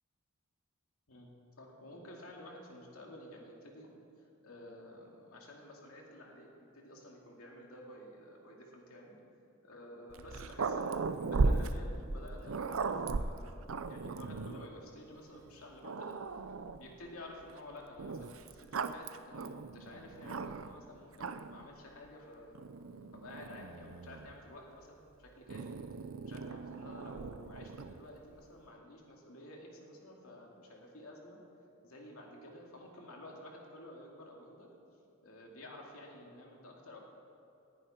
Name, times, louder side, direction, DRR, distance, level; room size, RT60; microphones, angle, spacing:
voice 1, 1.6-3.9 4.2-9.2 9.6-13.6 13.9-16.5 16.8-22.6 23.1-25.8 26.3-31.4 31.8-34.7 35.2-37.0, left 1 dB, 80° left, -1 dB, 2.6 m, -52 dB
Growling, 10.1-14.7 15.4-15.5 15.8-16.9 18.0-20.8 21.1-21.7 22.5-24.4 25.5-28.0, right 3 dB, 70° right, 0.6 m, -37 dB
19.0 x 10.5 x 4.4 m, 2.7 s
head